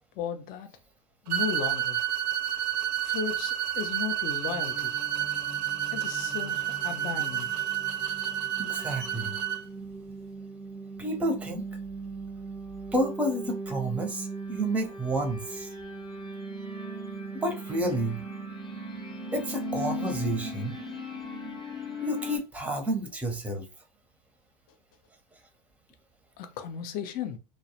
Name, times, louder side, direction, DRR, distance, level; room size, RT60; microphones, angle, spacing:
voice 1, 0.2-0.7 1.2-2.0 3.0-5.0 5.9-7.7 26.4-27.4, left 7 dB, 45° left, 0.5 m, -35 dB
sound 1, 1.3-9.6, right 11 dB, 70° right, 0.5 m, -30 dB
sound 2, 4.5-22.4, right 1 dB, 20° left, 0.9 m, -39 dB
voice 2, 8.6-9.4 11.0-11.6 12.9-15.7 17.4-18.2 19.3-20.8 22.0-23.6, right 1 dB, 5° right, 0.6 m, -30 dB
2.3 x 2.0 x 2.8 m
hypercardioid pair, 95°, 21 cm